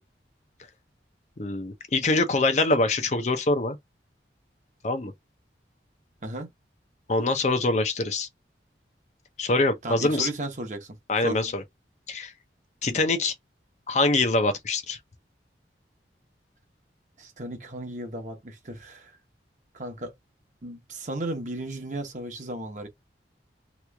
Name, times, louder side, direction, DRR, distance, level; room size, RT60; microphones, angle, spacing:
voice 1, 1.4-3.8 4.8-5.1 7.1-8.3 9.4-10.3 11.1-11.6 12.1-12.3 12.8-13.3 13.9-15.0, left 2 dB, 40° left, 0.5 m, -24 dB
voice 2, 9.8-11.4 17.2-19.2 19.7-20.1 20.6-22.9, right 1 dB, 45° right, 0.9 m, -35 dB
3.0 x 2.4 x 3.4 m
head